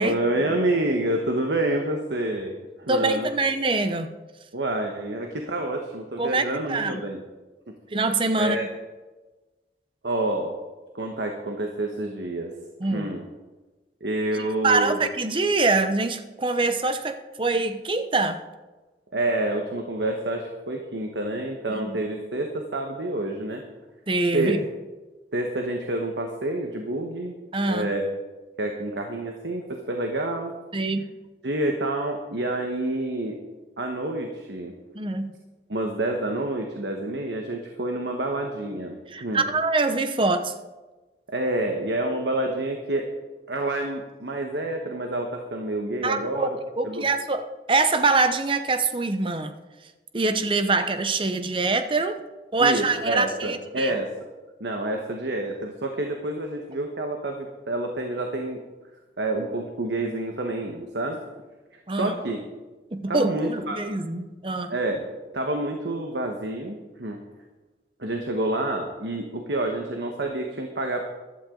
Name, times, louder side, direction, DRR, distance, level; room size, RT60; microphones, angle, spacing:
voice 1, 0.0-2.5 2.8-3.3 4.5-7.2 8.4-8.7 10.0-10.5 10.9-12.5 12.9-13.2 14.0-15.0 19.1-23.6 24.3-24.5 25.3-27.4 27.7-28.1 28.6-30.5 31.4-33.4 33.8-34.7 35.7-39.4 41.3-43.1 43.5-46.6 46.8-47.0 52.6-54.1 54.6-58.6 59.2-61.2 62.0-62.4 63.1-63.8 64.7-65.1 65.3-67.2 68.0-71.0, right 1 dB, 85° right, 3 dB, 1.3 m, -28 dB
voice 2, 2.9-4.1 6.2-7.1 7.9-8.7 12.8-13.1 14.6-18.4 21.7-22.0 24.1-24.6 27.5-27.9 30.7-31.1 34.9-35.3 39.1-40.5 46.0-46.5 46.8-49.5 50.1-52.2 52.5-53.9 61.9-62.2 62.9-64.7, right 3 dB, 30° right, 9 dB, 0.8 m, -24 dB
15.0 x 12.5 x 3.9 m, 1.2 s
head